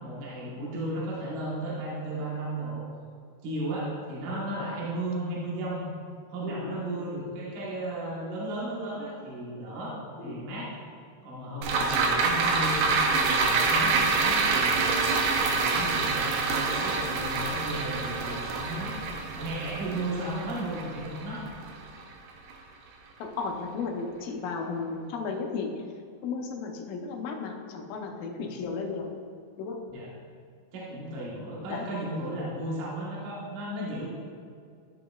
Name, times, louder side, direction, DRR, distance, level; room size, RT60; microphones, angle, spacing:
voice 1, 0.0-2.8 3.4-5.9 6.3-10.7 11.2-18.9 19.4-21.4 29.9-30.1 30.7-34.1, right 1 dB, 65° right, -6 dB, 2.6 m, -35 dB
voice 2, 6.4-7.1 10.2-10.5 11.9-12.0 23.2-25.8 26.2-29.2 29.6-29.8 31.7-31.9, left 4 dB, 75° left, 2 dB, 2.2 m, -34 dB
sound 1, 11.6-22.1 22.5-22.6, right 4 dB, 85° right, 2.7 m, -26 dB
13.0 x 5.7 x 2.3 m, 2.2 s
omnidirectional pair, 4.4 m